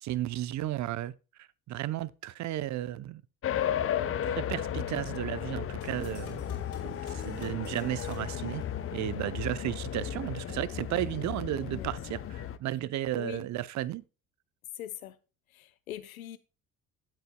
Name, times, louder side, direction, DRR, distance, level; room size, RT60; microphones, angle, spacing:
voice 1, 0.0-1.1 1.7-3.2 4.2-6.4 6.8-8.6 8.9-14.0, right 14 dB, 45° right, 0.7 m, -34 dB
sound 1, 3.4-12.6, left 9 dB, 35° left, 0.7 m, -34 dB
sound 2, 5.8-9.3, left 5 dB, 65° left, 3.1 m, -51 dB
voice 2, 14.8-15.1 15.5-16.4, left 12 dB, 80° left, 0.7 m, -42 dB
17.5 x 8.0 x 2.2 m
figure-of-eight pair, 55°, 41 cm